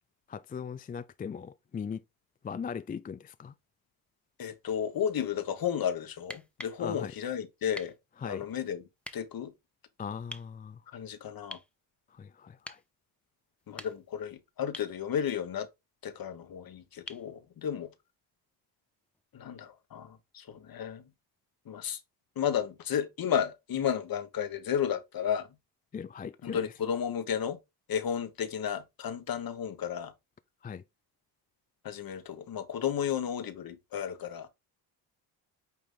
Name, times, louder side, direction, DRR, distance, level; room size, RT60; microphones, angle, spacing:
voice 1, 0.3-2.0 2.4-3.5 6.8-7.1 8.2-8.5 10.0-10.8 12.1-12.8 25.9-26.6 30.6-30.8, left 6 dB, 20° left, 0.3 m, -39 dB
voice 2, 4.4-7.9 8.2-8.8 9.1-9.5 10.9-11.6 13.7-15.7 16.0-17.9 19.3-21.0 21.7-22.0 22.4-25.5 26.4-27.6 27.9-30.1 31.8-34.5, left 8 dB, 55° left, 1.2 m, -33 dB
sound 1, 6.2-6.8 7.7-8.0 9.0-9.2 10.3-10.5 11.5-11.7 12.6-12.9 13.6-14.2 14.7-15.0 17.1-17.3 19.1-19.2, left 1 dB, 5° left, 0.8 m, -44 dB
8.7 x 3.0 x 3.7 m
supercardioid pair, 70°, 42 cm